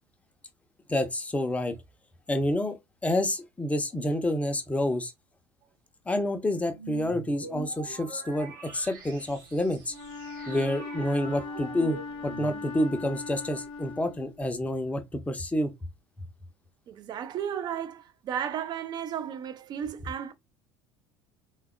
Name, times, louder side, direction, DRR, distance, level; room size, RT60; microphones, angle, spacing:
voice 1, 0.9-1.8 2.3-2.8 3.0-5.1 6.1-9.9 10.5-15.7, left 1 dB, 10° left, 0.6 m, -28 dB
sound 1, 6.7-13.0, right 5 dB, 60° right, 0.9 m, -44 dB
Wind instrument woodwind instrument, 9.9-14.6, left 3 dB, 55° left, 0.8 m, -39 dB
voice 2, 16.9-20.3, right 9 dB, 35° right, 0.4 m, -34 dB
3.4 x 2.3 x 2.2 m
figure-of-eight pair, 65°, 12 cm